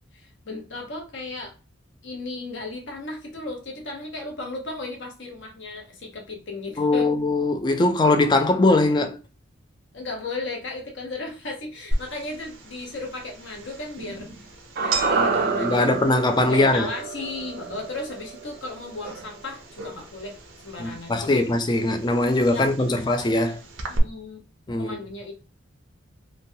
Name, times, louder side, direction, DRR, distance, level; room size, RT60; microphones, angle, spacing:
voice 1, 0.5-1.5 2.0-7.1 9.9-14.3 14.8-15.9 16.5-20.4 20.6-21.4 21.8-21.9 22.5-23.2 23.9-24.4 24.8-25.3, left 2 dB, 65° left, 0.8 m, -35 dB
voice 2, 6.8-9.2 15.4-16.9 20.8-23.6 24.7-25.0, left 2 dB, 20° left, 0.3 m, -21 dB
sound 1, 11.9-24.0, right 3 dB, 80° right, 0.7 m, -36 dB
sound 2, 14.8-19.1 19.3-19.4, right 3 dB, 50° right, 0.5 m, -28 dB
3.1 x 2.2 x 2.6 m
head